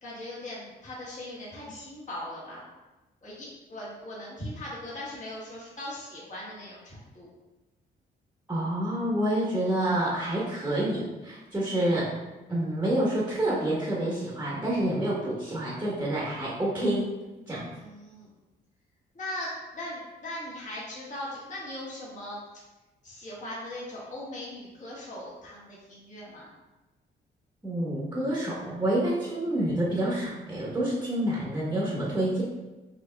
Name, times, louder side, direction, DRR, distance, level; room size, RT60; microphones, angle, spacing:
voice 1, 0.0-2.7 3.2-7.3 17.7-18.3 19.1-22.4 23.0-26.5, left 1 dB, 40° left, -7 dB, 1.4 m, -39 dB
voice 2, 8.5-12.1 12.5-17.0 17.5-17.7 27.6-32.4, right 1 dB, 10° right, -6 dB, 1.0 m, -28 dB
5.3 x 2.8 x 2.3 m, 1.1 s
cardioid pair, 80°, 20 cm